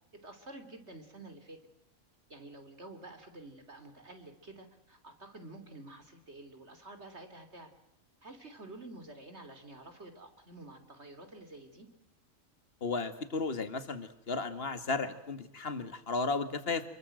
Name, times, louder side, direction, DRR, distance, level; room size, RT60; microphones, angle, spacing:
voice 1, 0.2-1.6 2.3-7.7 8.2-11.9, right 2 dB, 50° right, 8 dB, 3.6 m, -49 dB
voice 2, 12.8-16.8, left 3 dB, 45° left, 11 dB, 2.2 m, -34 dB
28.5 x 23.0 x 7.8 m, 0.81 s
omnidirectional pair, 1.4 m